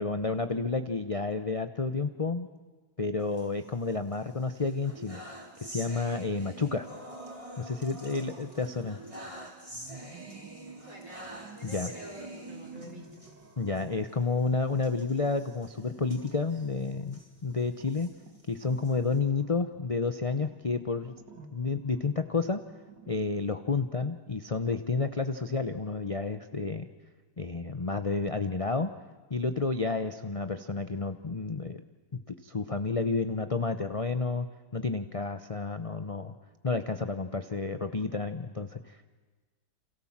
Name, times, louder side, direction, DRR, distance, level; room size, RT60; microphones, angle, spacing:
voice 1, 0.0-2.5 3.0-5.2 5.6-6.9 7.6-9.0 11.6-11.9 13.6-18.1 18.5-21.1 21.5-22.6 23.1-26.9 27.4-28.9 29.3-31.8 32.1-34.5 34.7-36.4 36.6-39.1, left 4 dB, 30° left, 9 dB, 0.7 m, -30 dB
sound 1, 3.2-4.2 4.5-13.3 13.7-13.8 14.1-14.2 14.8-17.3 17.8-19.2, right 1 dB, 20° right, 4.0 m, -46 dB
sound 2, 7.9-9.3 9.7-23.6, right 3 dB, 85° right, 2.9 m, -52 dB
voice 2, 10.7-13.3, equal, 45° right, 2 dB, 5.2 m, -47 dB
29.5 x 27.5 x 7.4 m, 1.3 s
omnidirectional pair, 1.9 m